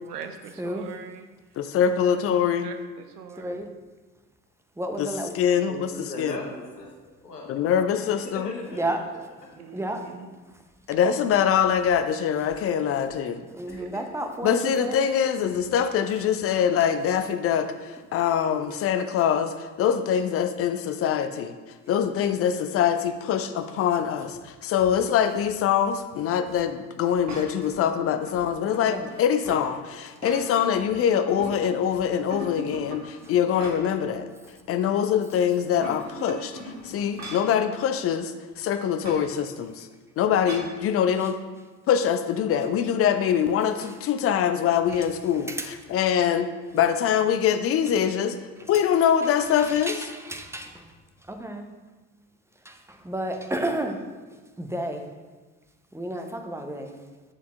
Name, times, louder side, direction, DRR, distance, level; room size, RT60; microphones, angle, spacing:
voice 1, 0.0-1.3 2.6-3.5 9.6-10.3 13.8-13.9, right 7 dB, 75° right, 7 dB, 0.7 m, -41 dB
voice 2, 1.6-2.7 5.0-5.9 6.2-6.4 7.5-8.4 10.9-13.4 14.4-21.5 21.9-34.3 34.7-39.9 40.2-41.4 41.9-46.5 46.7-48.4 48.7-50.1, left 8 dB, 30° left, 10 dB, 0.4 m, -24 dB
voice 3, 4.8-5.3 8.8-9.0 9.7-10.1 13.5-15.0 28.9-29.0 45.5-45.7 49.6-50.8 51.3-51.7 52.6-52.8 53.0-54.0 54.6-55.1 55.9-57.0, right 1 dB, 5° right, 5 dB, 0.7 m, -31 dB
voice 4, 5.7-7.8 8.2-9.1 9.4-9.7 13.6-14.0, left 2 dB, 85° left, 0 dB, 1.2 m, -39 dB
sound 1, 27.3-27.7 28.2-29.7 30.1-30.8 31.1-31.9 32.3-34.1 34.5-34.6 35.6-37.6 39.0-39.3 40.5-40.8, right 1 dB, 35° right, 1.7 m, -40 dB
8.5 x 6.7 x 2.5 m, 1.3 s
figure-of-eight pair, 55°, 47 cm